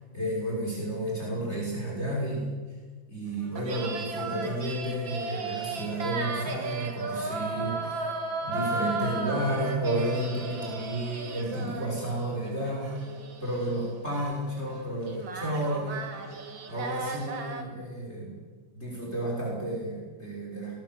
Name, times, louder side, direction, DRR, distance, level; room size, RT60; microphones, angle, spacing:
voice 1, 0.1-2.5 3.1-8.0 8.4-13.0 13.4-16.0 16.7-18.4 18.7-20.7, right 1 dB, 30° left, -3 dB, 6.3 m, -32 dB
sound 1, 3.4-17.6, right 3 dB, 70° right, 2.9 m, -35 dB
22.0 x 21.0 x 7.8 m, 1.4 s
omnidirectional pair, 2.2 m